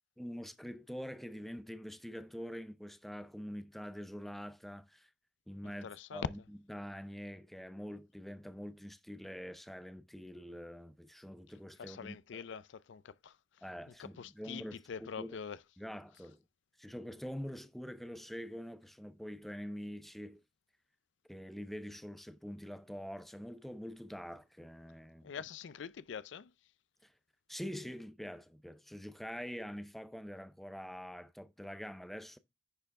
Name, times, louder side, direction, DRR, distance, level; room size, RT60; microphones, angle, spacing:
voice 1, 0.2-5.1 5.5-6.4 6.7-12.4 13.6-15.4 15.8-16.4 16.8-20.4 21.3-25.3 27.0-27.1 27.5-32.4, equal, ahead, 0.5 m, -45 dB
voice 2, 5.6-6.3 11.8-13.4 14.0-15.6 25.2-26.5, left 6 dB, 75° left, 0.4 m, -44 dB
10.0 x 4.6 x 3.5 m
head